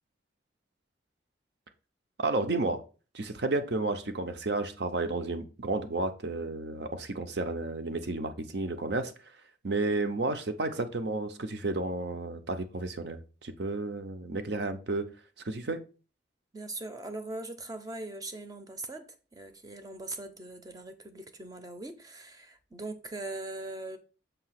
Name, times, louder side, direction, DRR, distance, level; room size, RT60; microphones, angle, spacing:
voice 1, 2.2-2.8 3.1-9.1 9.6-15.1 15.4-15.8, right 2 dB, 60° right, 0.7 m, -32 dB
voice 2, 16.5-19.0 19.3-24.0, right 2 dB, 20° right, 0.6 m, -40 dB
6.8 x 2.8 x 5.7 m
head